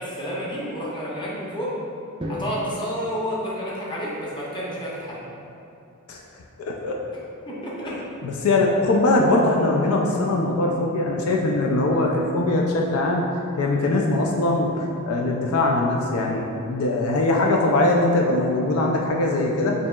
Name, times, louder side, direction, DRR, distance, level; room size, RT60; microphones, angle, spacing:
voice 1, 0.0-1.8 2.3-5.2 7.4-7.9, equal, 20° left, -6 dB, 0.8 m, -30 dB
Drum, 2.2-4.3, left 1 dB, 20° right, 0.4 m, -35 dB
voice 2, 6.6-7.0 8.2-13.3 13.6-19.7, left 2 dB, 70° left, 0 dB, 0.4 m, -21 dB
6.6 x 2.8 x 2.3 m, 2.7 s
head